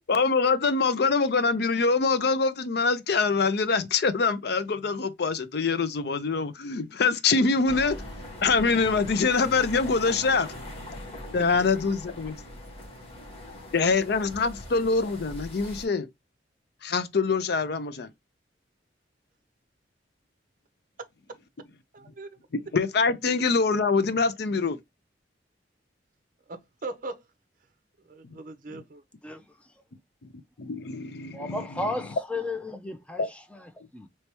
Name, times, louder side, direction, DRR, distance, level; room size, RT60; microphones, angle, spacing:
voice 1, 0.1-7.9 8.4-10.5 11.3-12.4 13.7-16.1 16.8-18.1 22.5-24.8 30.6-31.7 33.2-33.3, left 4 dB, 60° left, 0.5 m, -24 dB
sound 1, 7.6-15.8, left 1 dB, 30° left, 1.4 m, -41 dB
voice 2, 21.9-22.4 26.5-27.2 28.1-29.0, right 2 dB, 45° right, 0.6 m, -39 dB
voice 3, 31.3-34.1, left 2 dB, 5° left, 0.5 m, -34 dB
3.3 x 3.1 x 2.9 m
head